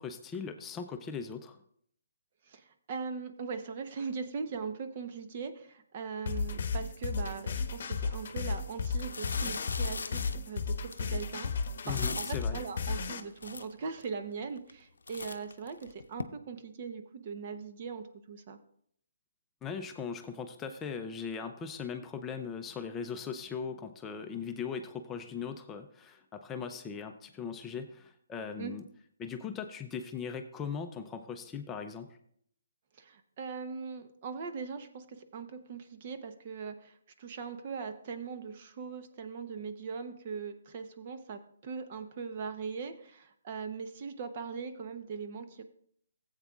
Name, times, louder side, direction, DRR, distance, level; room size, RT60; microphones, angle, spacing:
voice 1, 0.0-1.6 11.8-12.6 19.6-28.8 29.2-32.2, left 6 dB, 15° left, 5 dB, 0.5 m, -39 dB
voice 2, 2.5-11.5 11.8-18.6 28.6-28.7 33.0-45.6, right 5 dB, 40° right, 7 dB, 0.8 m, -40 dB
sound 1, 6.3-13.2, left 5 dB, 50° left, 0.9 m, -34 dB
sound 2, 8.2-8.4 8.8-12.6 13.1-13.2 13.4-14.1 14.6-14.8 15.1-16.2, left 4 dB, 85° left, 0.6 m, -40 dB
15.0 x 8.1 x 2.4 m, 0.65 s
hypercardioid pair, 155°, 0 cm